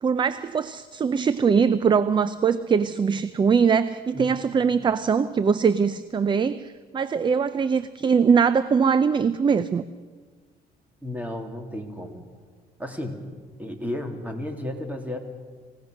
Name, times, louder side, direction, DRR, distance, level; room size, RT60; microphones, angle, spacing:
voice 1, 0.0-9.8, right 6 dB, 30° right, 15 dB, 0.6 m, -22 dB
voice 2, 4.1-4.4 11.0-12.2 12.8-13.2 13.6-15.2, left 1 dB, 10° right, 4 dB, 3.0 m, -33 dB
25.5 x 17.0 x 6.5 m, 1.5 s
cardioid pair, 110°, 17 cm